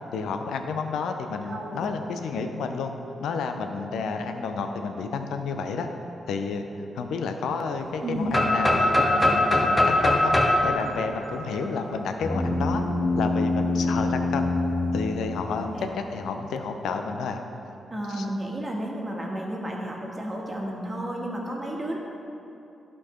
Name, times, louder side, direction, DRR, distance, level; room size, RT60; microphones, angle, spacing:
voice 1, 0.1-2.9 3.2-5.9 6.3-12.8 13.2-14.5 14.9-17.4 18.1-18.3, left 4 dB, 85° left, 6 dB, 0.5 m, -30 dB
voice 2, 1.5-1.8 8.0-8.3 15.8-15.9 17.9-22.0, right 1 dB, 30° right, -2 dB, 1.7 m, -32 dB
sound 1, 8.3-12.1, left 1 dB, 15° left, 1.3 m, -22 dB
sound 2, 12.2-15.9, left 2 dB, 35° left, 1.1 m, -26 dB
11.5 x 4.5 x 4.3 m, 2.9 s
supercardioid pair, 50°, 0 cm